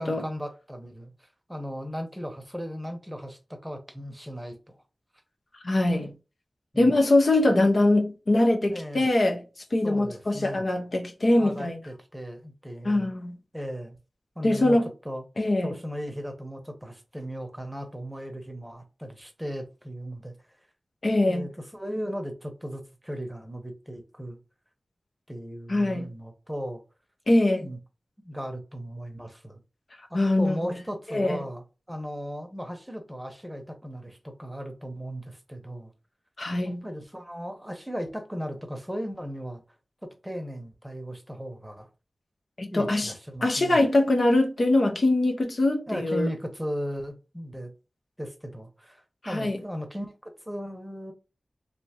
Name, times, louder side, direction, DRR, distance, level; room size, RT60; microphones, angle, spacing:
voice 1, 0.0-4.8 6.7-6.9 8.7-9.1 9.8-10.7 11.4-13.1 13.5-14.0 14.4-14.8 15.0-15.2 15.6-20.3 21.1-24.4 25.3-26.8 27.6-27.8 28.2-29.6 30.1-35.9 36.6-39.6 40.0-41.9 42.7-43.8 45.9-47.7 48.2-51.1, equal, 5° right, 0.9 m, -36 dB
voice 2, 5.6-6.1 6.8-9.4 9.7-11.8 12.8-13.4 14.4-14.9 15.4-15.7 21.0-21.5 25.7-26.1 27.3-27.7 30.1-30.6 31.1-31.4 36.4-36.8 42.6-43.1 43.4-46.3 49.3-49.6, left 2 dB, 65° left, 0.7 m, -23 dB
3.4 x 2.7 x 2.9 m
wide cardioid pair, 65°, 0 cm